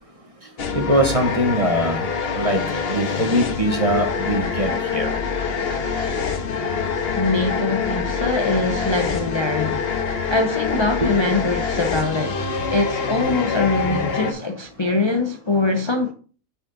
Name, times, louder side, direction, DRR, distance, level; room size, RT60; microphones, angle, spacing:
voice 1, 0.4-5.2 6.5-6.7 11.0-11.1, right 1 dB, 30° right, 0.9 m, -23 dB
sound 1, 0.6-14.3, left 5 dB, 50° left, 1.0 m, -25 dB
voice 2, 7.1-9.9 10.3-12.4 12.7-16.1, left 3 dB, 35° left, 0.5 m, -23 dB
6.3 x 6.1 x 3.9 m
omnidirectional pair, 1.5 m